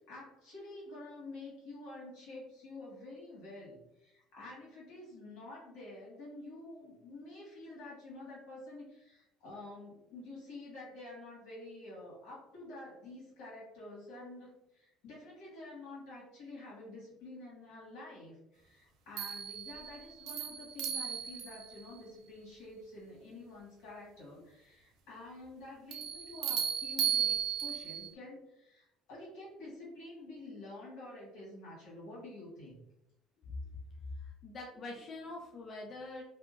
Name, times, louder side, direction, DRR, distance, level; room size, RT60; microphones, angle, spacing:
voice 1, 0.1-32.8, left 2 dB, 80° left, -5 dB, 1.4 m, -49 dB
sound 1, 19.2-21.9 25.9-28.1, right 8 dB, 70° right, 0.4 m, -35 dB
voice 2, 34.2-36.2, left 3 dB, 35° left, -2 dB, 0.4 m, -44 dB
2.8 x 2.2 x 2.4 m, 0.86 s
cardioid pair, 120°, 0 cm